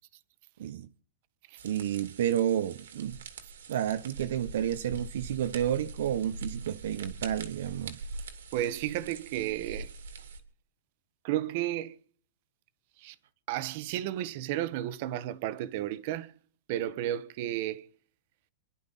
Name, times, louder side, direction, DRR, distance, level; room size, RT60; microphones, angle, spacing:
voice 1, 1.6-3.2 3.7-8.0, right 10 dB, 70° right, 0.7 m, -30 dB
sound 1, 1.6-10.4, right 3 dB, 85° right, 2.8 m, -43 dB
voice 2, 8.5-9.9 11.2-11.9 13.0-13.2 13.5-16.3 16.7-17.8, right 13 dB, 50° right, 1.1 m, -32 dB
27.0 x 11.0 x 4.1 m
hypercardioid pair, 145°, 0 cm